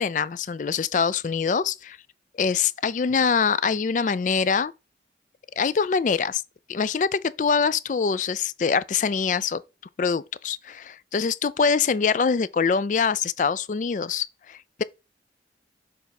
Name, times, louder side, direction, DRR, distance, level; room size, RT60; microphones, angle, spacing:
voice 1, 0.0-2.0 2.4-4.7 5.6-6.4 6.7-9.6 10.0-14.8, left 5 dB, 45° left, 0.3 m, -24 dB
7.0 x 3.4 x 4.2 m
head